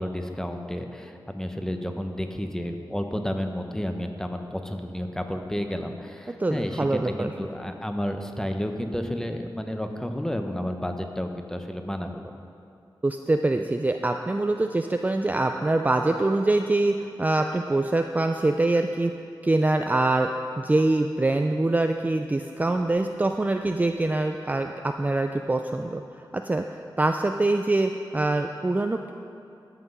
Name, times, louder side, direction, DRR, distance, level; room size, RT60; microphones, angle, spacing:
voice 1, 0.0-12.3, equal, 5° left, 5 dB, 0.8 m, -31 dB
voice 2, 6.4-7.3 13.0-19.1 19.4-20.3 20.6-26.0 26.3-29.1, right 2 dB, 20° right, 5 dB, 0.3 m, -24 dB
13.0 x 5.9 x 5.4 m, 2.6 s
wide cardioid pair, 80°, 8 cm